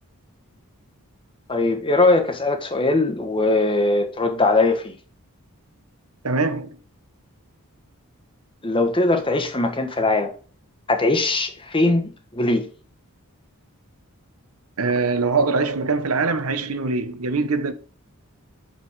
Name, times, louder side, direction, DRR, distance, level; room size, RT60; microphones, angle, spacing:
voice 1, 1.5-4.9 8.6-10.3 10.9-12.6, left 2 dB, 25° left, 1.2 m, -20 dB
voice 2, 6.2-6.7 14.8-17.7, right 4 dB, 70° right, 1.0 m, -22 dB
6.6 x 5.4 x 4.7 m
head